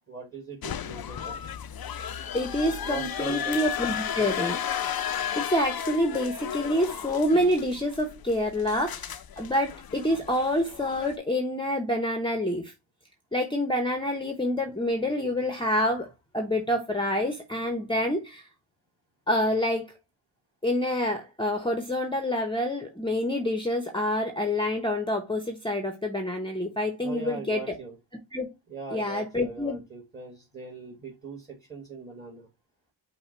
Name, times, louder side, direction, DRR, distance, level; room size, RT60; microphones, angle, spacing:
voice 1, 0.1-1.4 2.6-3.6 27.0-28.0 28.7-32.5, right 4 dB, 20° right, 1.4 m, -40 dB
sound 1, 0.6-11.1, left 9 dB, 50° left, 0.5 m, -34 dB
voice 2, 2.3-4.6 5.4-12.7 13.3-16.1 16.3-18.5 19.3-19.9 20.6-27.6 28.3-28.5 28.9-29.8, left 1 dB, 10° left, 0.7 m, -27 dB
5.6 x 2.2 x 4.3 m
wide cardioid pair, 90°, 48 cm